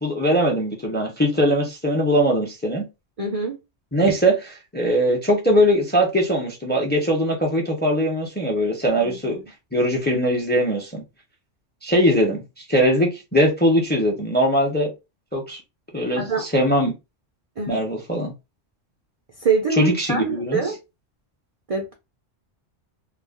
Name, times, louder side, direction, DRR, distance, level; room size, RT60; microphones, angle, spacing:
voice 1, 0.0-2.8 3.9-9.4 9.7-11.0 11.8-12.4 12.7-14.9 15.3-15.6 15.9-16.9 17.7-18.3 19.8-20.6, equal, 15° left, 0.4 m, -21 dB
voice 2, 3.2-3.6 9.0-9.4 16.2-16.5 17.6-17.8 19.4-20.8 21.7-21.9, right 5 dB, 60° right, 0.3 m, -24 dB
2.4 x 2.1 x 3.5 m
omnidirectional pair, 1.3 m